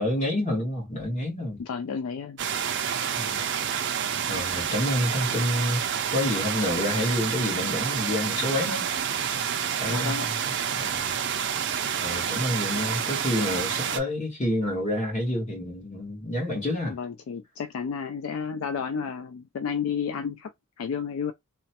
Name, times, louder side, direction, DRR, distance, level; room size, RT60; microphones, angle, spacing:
voice 1, 0.0-1.6 3.2-3.4 4.3-5.8 6.1-8.9 9.8-10.3 10.7-11.1 12.0-17.0, left 1 dB, 30° left, 1.4 m, -28 dB
voice 2, 1.6-2.4 9.9-10.3 11.8-11.9 16.9-20.5 20.8-21.3, left 6 dB, 70° left, 0.3 m, -31 dB
sound 1, 2.4-14.0, right 8 dB, 55° right, 0.4 m, -28 dB
3.0 x 2.1 x 2.8 m
head